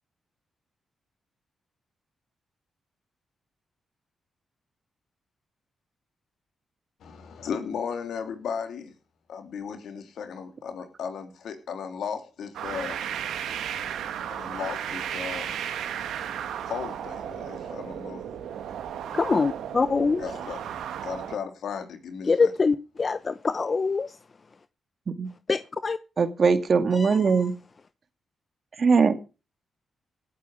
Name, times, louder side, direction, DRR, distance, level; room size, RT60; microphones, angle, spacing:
voice 1, 7.0-8.9 9.3-13.0 14.3-15.5 16.6-18.3 19.9-20.6 21.0-22.5, left 6 dB, 75° left, 3.1 m, -35 dB
sound 1, 12.5-21.4, right 9 dB, 80° right, 2.0 m, -34 dB
voice 2, 19.1-20.2 22.3-24.1 25.5-26.0 27.0-27.4, left 4 dB, 45° left, 0.8 m, -24 dB
voice 3, 26.2-27.5 28.8-29.1, right 5 dB, 55° right, 2.2 m, -21 dB
18.0 x 8.4 x 6.4 m
supercardioid pair, 50°, 0 cm